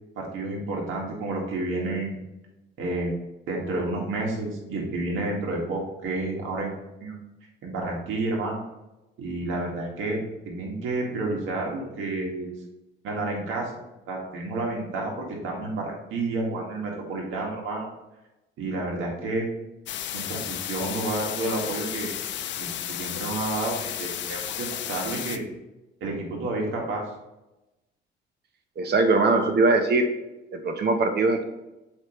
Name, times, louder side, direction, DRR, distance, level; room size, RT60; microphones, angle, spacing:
voice 1, 0.2-2.2 2.8-3.1 3.5-6.7 7.0-7.1 7.6-8.6 9.2-12.5 13.0-13.8 14.1-17.9 18.6-19.5 20.1-22.1 22.6-22.7 23.0-25.4 26.0-27.1, right 2 dB, 85° right, -1 dB, 1.9 m, -30 dB
sound 1, 19.9-25.4, left 11 dB, 65° left, 0.5 m, -33 dB
voice 2, 28.8-30.1 30.5-31.4, right 3 dB, 55° right, 5 dB, 1.0 m, -21 dB
6.3 x 5.0 x 3.1 m, 0.98 s
cardioid pair, 90°, 20 cm